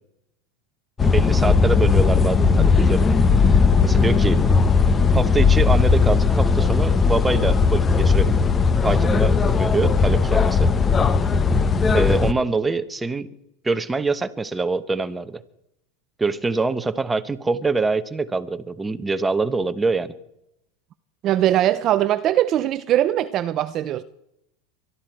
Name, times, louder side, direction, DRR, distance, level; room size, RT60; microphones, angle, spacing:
sound 1, 1.0-12.3, left 5 dB, 20° left, 0.9 m, -17 dB
voice 1, 1.0-4.4 5.1-8.4 8.8-10.7 11.9-13.3 13.6-15.4 16.2-20.1, right 3 dB, 10° right, 1.1 m, -24 dB
voice 2, 21.2-24.0, right 12 dB, 40° right, 0.6 m, -21 dB
23.5 x 13.0 x 4.6 m
supercardioid pair, 115°, 0 cm